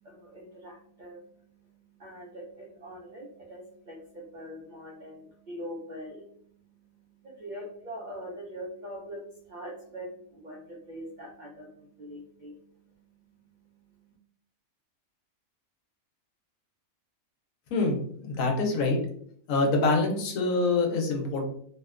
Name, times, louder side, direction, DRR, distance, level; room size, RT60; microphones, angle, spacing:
voice 1, 0.0-14.1, equal, 70° right, -3 dB, 0.4 m, -44 dB
voice 2, 17.7-19.0 19.5-21.5, left 3 dB, 75° left, 1 dB, 1.0 m, -25 dB
2.8 x 2.1 x 2.3 m, 0.63 s
omnidirectional pair, 1.5 m